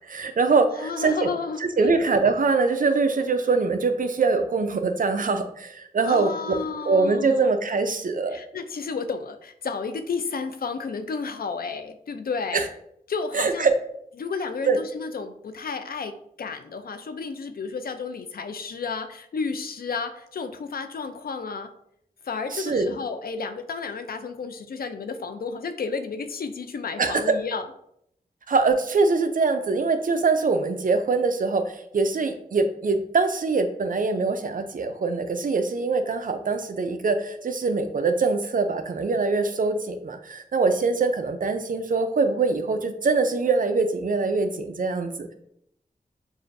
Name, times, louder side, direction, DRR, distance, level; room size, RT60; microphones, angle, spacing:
voice 1, 0.0-1.3 1.6-6.6 6.9-8.4 12.5-12.7 13.3-13.7 14.7-14.8 22.5-22.9 27.0-27.3 28.5-45.3, right 4 dB, 60° right, 7 dB, 0.5 m, -23 dB
voice 2, 0.8-1.9 6.1-7.5 8.3-12.6 13.1-13.7 14.2-21.7 22.2-27.7, left 4 dB, 75° left, 8 dB, 0.5 m, -32 dB
6.2 x 2.5 x 2.6 m, 0.73 s
wide cardioid pair, 70°, 16 cm